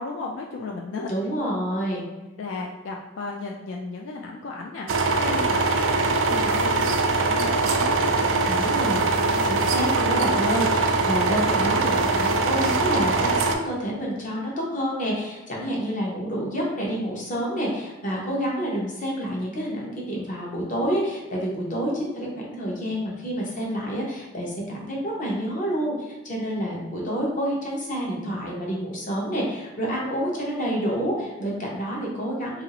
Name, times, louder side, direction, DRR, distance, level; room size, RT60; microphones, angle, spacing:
voice 1, 0.0-1.2 2.4-8.7 9.3-9.5, left 3 dB, 75° left, 0 dB, 0.3 m, -35 dB
voice 2, 1.1-2.0 5.3-5.5 8.5-9.1 9.5-32.6, equal, 40° left, -3 dB, 0.8 m, -28 dB
sound 1, 4.9-13.6, right 3 dB, 90° right, 0.4 m, -22 dB
2.9 x 2.6 x 2.8 m, 1.1 s
head